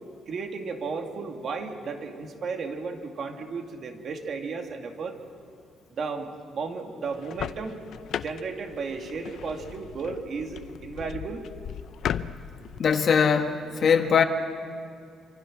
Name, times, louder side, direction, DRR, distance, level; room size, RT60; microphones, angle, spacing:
voice 1, 0.3-5.2 5.9-7.8 8.2-11.4, right 4 dB, 45° right, 4 dB, 2.4 m, -34 dB
sound 1, 7.1-12.8, left 9 dB, 60° left, 0.7 m, -36 dB
voice 2, 12.8-14.2, left 6 dB, 40° left, 6 dB, 1.6 m, -21 dB
27.5 x 26.0 x 6.4 m, 2.4 s
cardioid pair, 155°, 0 cm